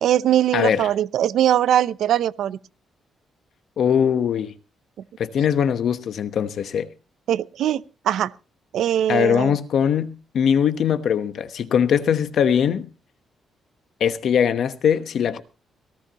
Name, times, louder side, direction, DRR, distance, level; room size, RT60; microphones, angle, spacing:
voice 1, 0.0-2.6 7.3-8.3 8.7-9.6, right 11 dB, 75° right, 0.6 m, -21 dB
voice 2, 0.5-0.9 3.8-4.5 5.2-6.9 9.1-12.9 14.0-15.4, left 8 dB, 55° left, 1.1 m, -21 dB
18.0 x 17.0 x 3.0 m
cardioid pair, 160°, 0 cm